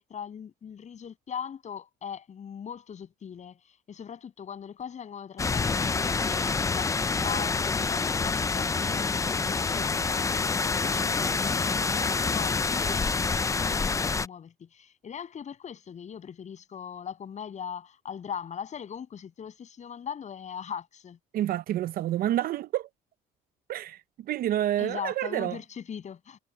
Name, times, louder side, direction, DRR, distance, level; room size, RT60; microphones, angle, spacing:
voice 1, 0.0-3.6 3.9-6.5 6.7-21.2 24.8-26.4, left 8 dB, 45° left, 7.4 m, -40 dB
sound 1, 5.4-14.3, left 4 dB, 20° left, 0.5 m, -27 dB
voice 2, 21.3-22.9 23.7-25.6, right 12 dB, 60° right, 0.6 m, -29 dB
cardioid pair, 110°, 17 cm